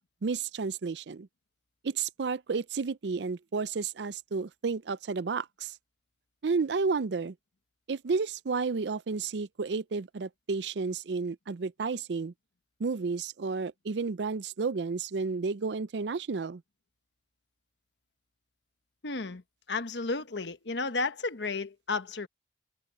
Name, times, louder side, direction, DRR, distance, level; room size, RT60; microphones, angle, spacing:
voice 1, 0.2-1.3 1.8-5.8 6.4-7.3 7.9-12.3 12.8-16.6, right 4 dB, 75° right, 0.5 m, -31 dB
voice 2, 19.0-19.4 19.7-22.3, left 3 dB, 80° left, 1.2 m, -32 dB
head